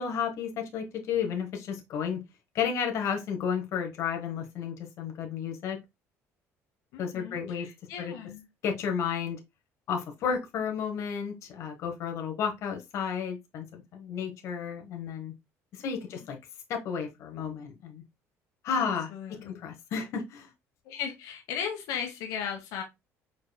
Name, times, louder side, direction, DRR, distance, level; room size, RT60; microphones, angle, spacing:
voice 1, 0.0-2.2 2.5-5.8 7.0-7.7 8.0-8.1 8.6-9.4 9.9-15.3 15.7-16.4 16.7-18.0 18.6-20.5, left 7 dB, 55° left, 1.2 m, -32 dB
voice 2, 6.9-8.5 16.1-16.3 18.8-19.6 20.8-22.8, left 8 dB, 80° left, 1.2 m, -37 dB
5.0 x 4.5 x 2.3 m
cardioid pair, 155°, 6 cm